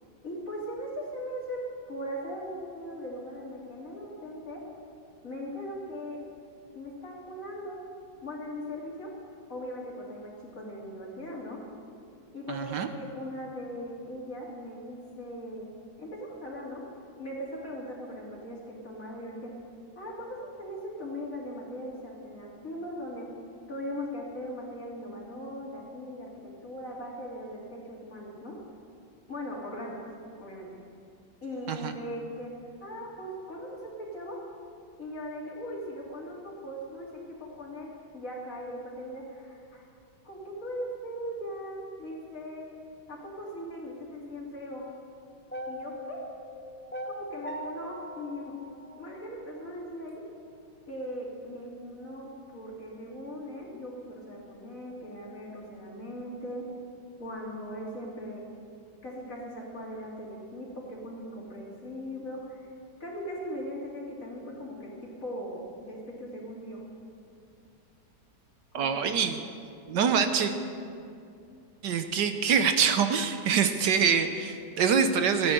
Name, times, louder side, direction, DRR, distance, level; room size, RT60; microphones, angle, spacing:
voice 1, 0.2-1.6 1.9-4.6 5.2-6.2 6.7-7.8 8.2-9.1 9.5-11.6 12.3-15.7 16.0-16.8 17.2-19.5 19.9-23.3 23.7-26.3 26.6-28.6 29.3-30.1 30.4-30.7 31.4-32.5 32.8-34.4 35.0-39.8 40.2-42.6 43.1-44.9 45.7-46.2 47.0-48.6 48.9-50.2 50.9-56.6 57.2-58.4 59.0-62.7 63.0-64.9 65.2-66.8 68.7-69.0, equal, 45° left, -3 dB, 3.3 m, -39 dB
voice 2, 12.5-12.9 31.7-31.9 68.7-69.4 69.9-70.5 71.8-75.5, right 6 dB, 70° right, 7 dB, 1.4 m, -25 dB
sound 1, 45.5-49.7, equal, 15° left, 0.4 m, -40 dB
15.5 x 9.8 x 7.9 m, 2.5 s
omnidirectional pair, 2.0 m